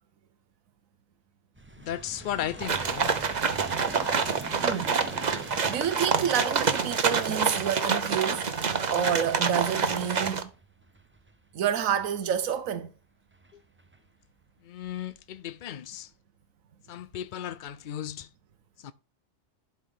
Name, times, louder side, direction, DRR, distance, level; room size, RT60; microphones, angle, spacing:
sound 1, 1.5-12.7 13.3-14.0 14.8-15.0 15.3-15.5, right 2 dB, 10° right, 0.6 m, -45 dB
voice 1, 1.8-3.1 4.7-5.0 13.5-13.6 14.6-16.1 16.9-18.3 18.8-18.9, left 10 dB, 70° left, 0.4 m, -36 dB
sound 2, 2.6-10.4, right 5 dB, 40° right, 0.8 m, -27 dB
voice 2, 4.6-5.0 5.4-8.5 8.9-10.5 11.5-12.9, right 9 dB, 90° right, 1.2 m, -29 dB
sound 3, 5.5-9.7, right 3 dB, 55° left, 1.9 m, -47 dB
11.5 x 5.1 x 3.7 m
omnidirectional pair, 1.4 m